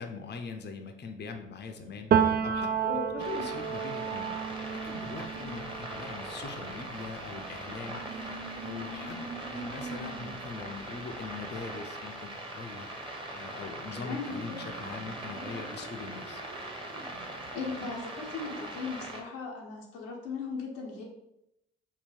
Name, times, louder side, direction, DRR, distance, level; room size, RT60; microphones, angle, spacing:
voice 1, 0.0-2.7 3.3-4.4 4.7-9.2 9.5-12.9 13.3-16.4, left 4 dB, 35° left, 5 dB, 0.6 m, -42 dB
sound 1, 1.5-3.2 4.3-11.1 14.2-18.0, right 2 dB, 50° right, 0.8 m, -47 dB
Piano, 2.1-9.7 10.1-11.6, right 7 dB, 35° right, 0.4 m, -33 dB
voice 2, 2.8-3.5 5.3-5.6 13.9-14.6 17.5-21.0, left 4 dB, 85° left, -1 dB, 0.8 m, -37 dB
sound 2, 3.2-19.2, right 1 dB, 15° right, 1.0 m, -41 dB
3.7 x 2.1 x 4.4 m, 0.84 s
hypercardioid pair, 50°, 30 cm